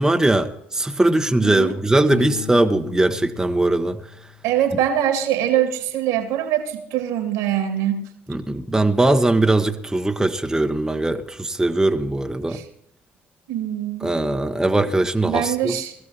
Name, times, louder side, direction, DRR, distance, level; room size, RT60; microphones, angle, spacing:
voice 1, 0.0-4.0 8.3-12.6 14.0-15.8, right 2 dB, 10° right, 0.9 m, -20 dB
voice 2, 1.4-1.7 4.4-8.0 12.5-12.6 13.5-14.1 15.2-15.9, right 11 dB, 65° right, 2.0 m, -23 dB
Piano, 2.1-4.9, left 9 dB, 80° left, 0.8 m, -37 dB
21.0 x 14.5 x 2.9 m
figure-of-eight pair, 50°, 6 cm